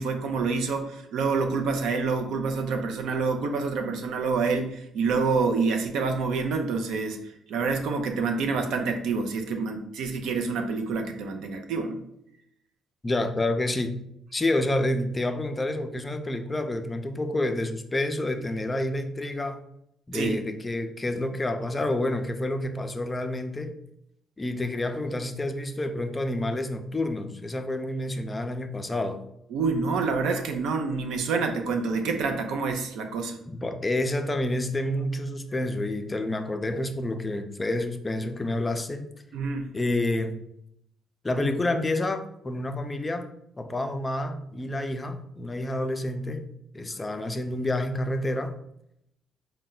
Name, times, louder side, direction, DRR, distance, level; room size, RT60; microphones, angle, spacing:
voice 1, 0.0-7.2 7.5-12.1 20.1-20.4 29.5-33.4 39.3-39.7, right 4 dB, 85° right, 0.5 m, -27 dB
voice 2, 13.0-14.1 14.3-19.6 20.1-23.8 24.4-29.2 33.5-39.1 39.7-40.4 41.2-43.3 43.6-46.5 46.7-48.6, left 1 dB, 20° left, 0.4 m, -29 dB
4.2 x 2.2 x 3.8 m
cardioid pair, 90°, 0 cm